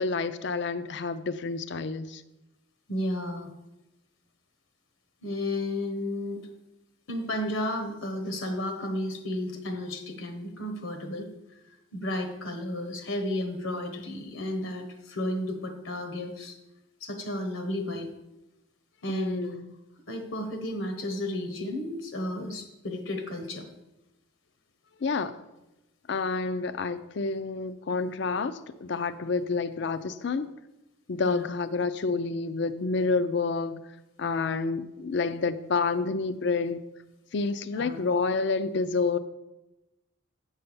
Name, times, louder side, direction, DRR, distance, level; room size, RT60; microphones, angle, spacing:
voice 1, 0.0-2.2 19.1-19.7 25.0-25.3 26.1-30.5 31.1-33.8 34.2-36.8 37.3-39.2, left 4 dB, 60° left, 13 dB, 0.4 m, -29 dB
voice 2, 2.9-3.5 5.2-6.5 7.1-11.3 11.9-16.6 17.0-18.1 19.0-19.5 20.1-23.6 31.3-31.4 37.7-38.0, left 1 dB, 80° left, 6 dB, 1.2 m, -32 dB
8.7 x 5.6 x 6.8 m, 0.97 s
head